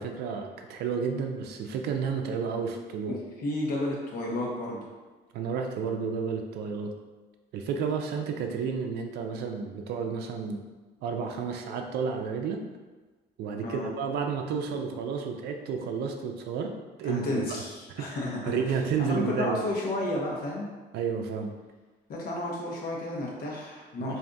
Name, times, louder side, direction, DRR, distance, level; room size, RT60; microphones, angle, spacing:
voice 1, 0.0-3.2 5.3-6.9 7.5-10.6 11.0-12.6 13.4-17.4 17.9-18.2 18.5-19.6 20.9-21.5 24.0-24.2, right 6 dB, 75° right, 4 dB, 0.4 m, -31 dB
voice 2, 3.1-4.9 13.6-13.9 17.0-18.6 19.0-20.7 22.1-24.2, left 1 dB, 60° left, -2 dB, 0.9 m, -32 dB
3.4 x 2.6 x 2.6 m, 1.3 s
cardioid pair, 110°, 17 cm